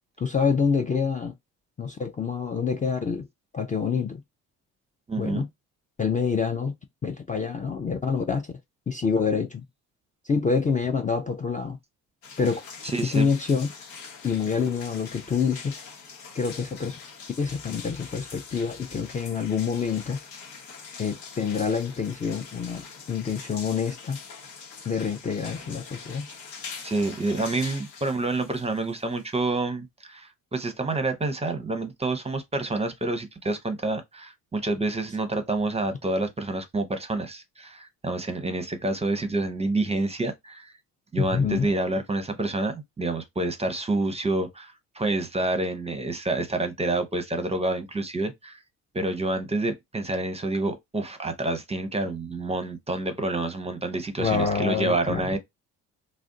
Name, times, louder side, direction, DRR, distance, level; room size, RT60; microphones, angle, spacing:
voice 1, 0.2-1.3 1.8-3.3 3.5-4.2 5.2-5.5 6.0-6.7 7.0-8.5 8.9-9.6 10.2-11.8 12.4-12.6 13.0-13.7 14.2-15.8 16.3-16.9 17.4-20.2 21.0-24.2 24.9-26.3 41.2-41.7 54.2-55.4, left 5 dB, 20° left, 0.4 m, -26 dB
voice 2, 5.1-5.4 12.8-13.3 26.8-40.7 41.1-48.6 48.9-55.4, right 2 dB, 15° right, 0.7 m, -28 dB
sound 1, 12.2-29.5, left 5 dB, 75° left, 1.0 m, -43 dB
2.5 x 2.1 x 3.6 m
supercardioid pair, 70°, 36 cm